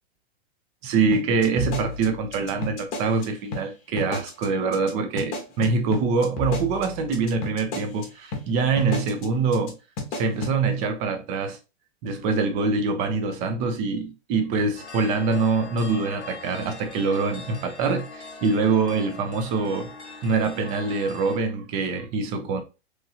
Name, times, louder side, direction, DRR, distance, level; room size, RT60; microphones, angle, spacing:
voice 1, 0.8-9.8 10.1-11.6 12.0-19.9 20.2-22.6, right 4 dB, 20° right, 0.4 m, -24 dB
sound 1, 1.1-3.2 3.5-3.6 4.0-4.4 4.7-4.9 5.2-8.0 8.3-8.4 8.8-9.2 9.5-9.7 10.0-10.5, left 2 dB, 35° left, 0.8 m, -31 dB
sound 2, 14.8-21.4, left 4 dB, 85° left, 0.7 m, -41 dB
3.1 x 2.6 x 2.4 m
figure-of-eight pair, 100°, 33 cm